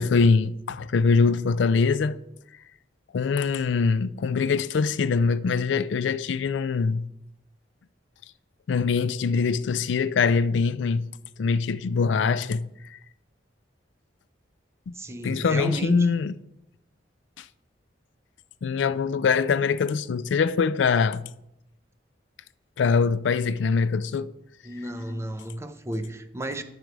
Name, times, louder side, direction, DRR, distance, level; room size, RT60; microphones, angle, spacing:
voice 1, 0.0-2.2 3.1-7.1 8.7-11.1 11.4-12.7 12.9-13.0 14.9-15.0 15.2-16.3 17.4-17.5 18.6-21.2 22.8-24.3, left 5 dB, 75° left, 0.4 m, -23 dB
voice 2, 14.9-16.1 24.6-26.6, right 1 dB, 15° right, 0.5 m, -32 dB
11.0 x 5.1 x 4.6 m
head